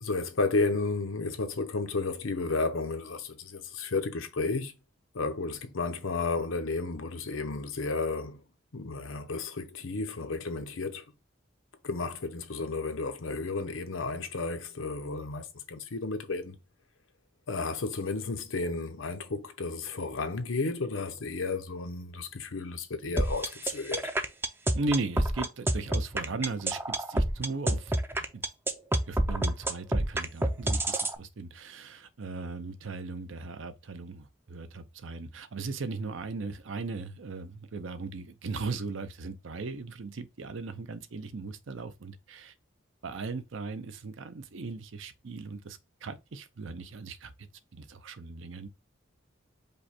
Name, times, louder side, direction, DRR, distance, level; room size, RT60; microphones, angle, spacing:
voice 1, 0.0-4.7 5.1-8.4 8.7-11.0 11.8-16.6 17.5-24.1, left 3 dB, 85° left, 0.8 m, -32 dB
sound 1, 23.2-31.1, right 1 dB, 10° right, 0.4 m, -27 dB
voice 2, 24.7-27.9 28.3-28.4 29.1-42.5 43.0-47.5 47.7-48.7, right 3 dB, 70° right, 0.6 m, -37 dB
5.2 x 2.2 x 4.2 m
head